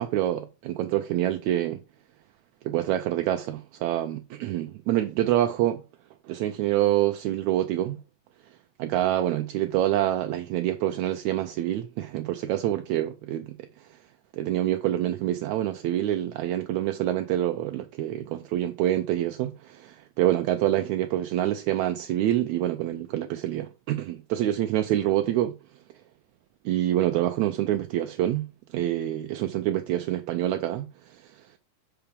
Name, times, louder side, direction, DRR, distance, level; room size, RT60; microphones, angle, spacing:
voice 1, 0.0-1.8 2.6-5.8 6.3-8.0 8.8-13.6 14.3-25.5 26.6-28.4 28.7-31.3, right 13 dB, 80° right, 1.6 m, -26 dB
5.8 x 5.7 x 5.1 m
omnidirectional pair, 3.8 m